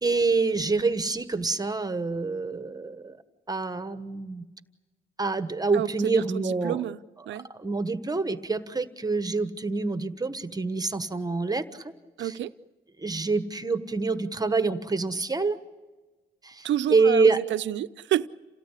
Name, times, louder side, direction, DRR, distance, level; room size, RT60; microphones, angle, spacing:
voice 1, 0.0-3.2 3.5-4.5 5.2-6.8 7.5-11.9 12.2-12.3 13.0-15.6 16.4-17.4, right 4 dB, 20° right, 10 dB, 1.3 m, -26 dB
voice 2, 5.7-7.0 7.3-7.5 12.2-12.5 16.6-18.3, right 12 dB, 70° right, 11 dB, 0.7 m, -29 dB
28.5 x 17.5 x 8.4 m, 1.2 s
cardioid pair, 90°, 20 cm